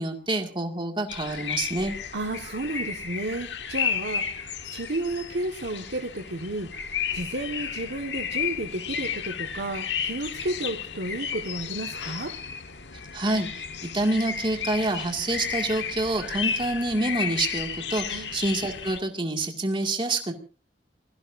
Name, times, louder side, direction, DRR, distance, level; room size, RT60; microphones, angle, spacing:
voice 1, 0.0-1.9 13.1-20.3, right 2 dB, 30° right, 3 dB, 2.2 m, -27 dB
sound 1, 1.1-19.0, left 7 dB, 80° left, 1.4 m, -33 dB
voice 2, 2.1-4.3 4.7-6.7 7.1-12.3 18.1-18.3, right 1 dB, 75° right, 2 dB, 1.6 m, -32 dB
27.5 x 17.5 x 2.6 m, 0.37 s
head